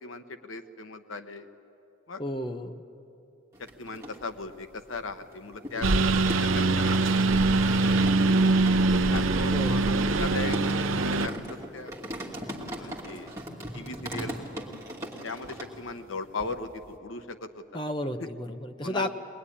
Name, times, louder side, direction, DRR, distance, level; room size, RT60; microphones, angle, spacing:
voice 1, 0.0-1.5 2.1-2.2 3.6-5.9 6.3-7.4 8.1-8.4 8.9-10.8 11.2-11.9 12.8-13.3 13.7-14.4 15.2-17.8 18.8-19.1, left 3 dB, 90° left, 9 dB, 1.0 m, -38 dB
voice 2, 2.2-2.8 9.5-9.9 17.7-19.1, left 1 dB, 25° left, 6 dB, 0.9 m, -32 dB
sound 1, 3.5-4.5 4.9-16.1 16.4-17.0, equal, 15° right, 2.5 m, -40 dB
Engine, 5.8-11.3, right 3 dB, 85° right, 0.7 m, -23 dB
23.0 x 20.0 x 10.0 m, 2.7 s
head